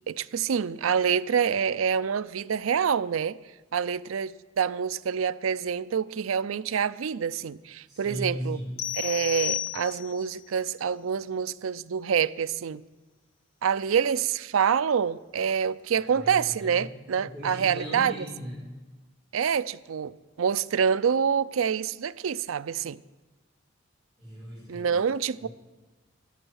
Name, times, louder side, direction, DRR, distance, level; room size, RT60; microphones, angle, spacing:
voice 1, 0.1-3.4 3.7-8.6 8.9-12.8 13.6-18.2 19.3-23.0 24.7-25.5, right 7 dB, 75° right, 0.4 m, -27 dB
voice 2, 7.9-8.9 15.9-16.8 17.2-18.7 24.2-25.0, equal, ahead, 5.6 m, -37 dB
sound 1, 8.8-10.3, left 12 dB, 75° left, 0.8 m, -32 dB
12.5 x 12.0 x 6.4 m
head